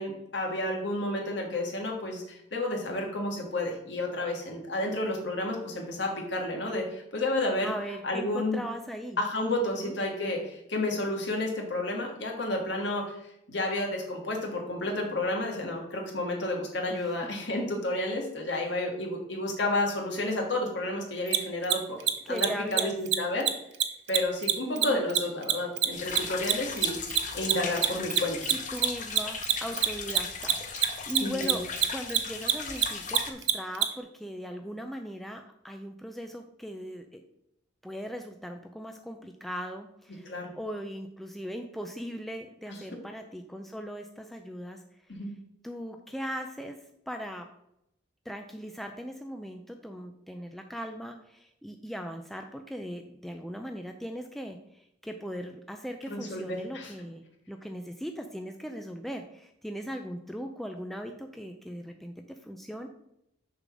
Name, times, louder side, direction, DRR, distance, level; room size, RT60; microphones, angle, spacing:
voice 1, 0.0-7.7 8.0-8.6 9.2-13.2 13.5-22.0 22.3-23.5 24.1-27.0 27.3-28.4 31.2-31.6 40.3-40.5 42.7-42.8 45.1-45.3 56.1-56.9, left 1 dB, 65° left, 0 dB, 1.8 m, -31 dB
voice 2, 7.6-9.2 9.6-10.0 16.9-17.0 18.5-18.7 22.3-23.0 24.6-25.1 28.5-31.6 31.9-37.2 37.8-44.8 45.6-46.8 47.1-47.5 48.3-62.9, equal, ahead, 4 dB, 0.4 m, -39 dB
Mechanisms, 21.3-21.4 21.6-21.7 22.0-22.1 22.4-22.5 22.7-22.8 23.1-23.2 23.4-23.5 23.8-26.5 26.8-33.8, right 13 dB, 60° right, 0.6 m, -24 dB
sound 1, 25.9-33.3, left 5 dB, 40° left, 0.8 m, -37 dB
6.6 x 3.8 x 6.1 m, 0.78 s
head